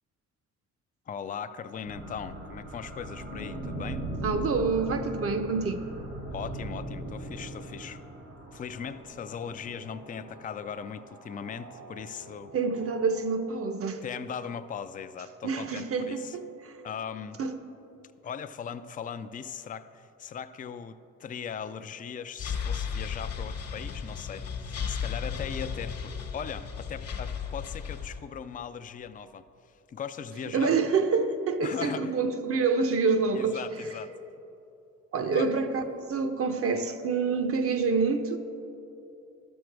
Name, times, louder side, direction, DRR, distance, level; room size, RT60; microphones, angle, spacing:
voice 1, 1.1-4.1 6.3-8.0 8.5-12.5 14.0-16.4 16.8-17.4 18.2-29.5 29.9-30.8 31.6-32.2 33.3-34.2 35.3-35.5 36.7-36.8, left 7 dB, 30° left, 0.4 m, -39 dB
sound 1, 1.9-13.8, right 1 dB, 75° right, 2.4 m, -40 dB
voice 2, 4.2-5.8 12.5-14.0 15.4-16.7 17.4-17.5 30.5-33.6 35.1-35.8 36.1-38.4, right 4 dB, 50° right, 0.8 m, -27 dB
sound 2, 22.4-28.2, left 6 dB, 55° left, 1.1 m, -34 dB
12.5 x 6.3 x 4.6 m
cardioid pair, 90°, 30 cm